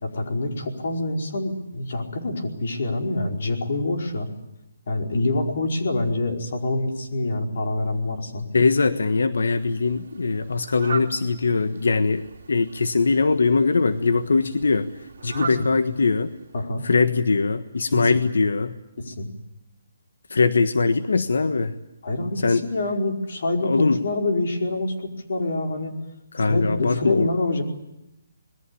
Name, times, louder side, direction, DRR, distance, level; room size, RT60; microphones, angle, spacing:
voice 1, 0.0-4.3 4.9-8.5 15.3-15.7 16.5-16.8 17.9-18.1 19.0-19.3 22.0-25.9 26.4-27.6, left 2 dB, 50° left, 2 dB, 4.9 m, -26 dB
voice 2, 8.5-12.2 12.5-14.9 15.2-16.3 16.8-18.7 20.3-21.7 22.4-22.6 23.6-24.0 26.3-27.3, left 4 dB, 85° left, 9 dB, 1.4 m, -21 dB
Fowl, 9.3-16.7, right 5 dB, 55° right, 2.5 m, -40 dB
26.0 x 21.5 x 8.5 m, 0.89 s
hypercardioid pair, 175°, 0 cm